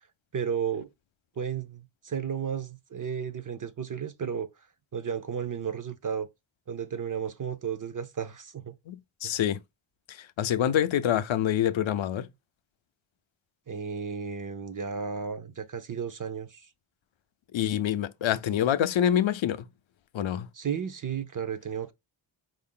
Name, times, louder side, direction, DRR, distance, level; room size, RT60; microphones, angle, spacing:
voice 1, 0.3-0.9 1.4-4.5 4.9-6.3 6.7-8.7 9.2-9.4 13.7-16.6 20.5-21.9, right 7 dB, 45° right, 0.5 m, -33 dB
voice 2, 8.9-9.6 10.4-12.3 17.5-19.7 20.1-20.5, left 10 dB, 70° left, 0.5 m, -26 dB
4.3 x 2.5 x 3.7 m
wide cardioid pair, 130°, 47 cm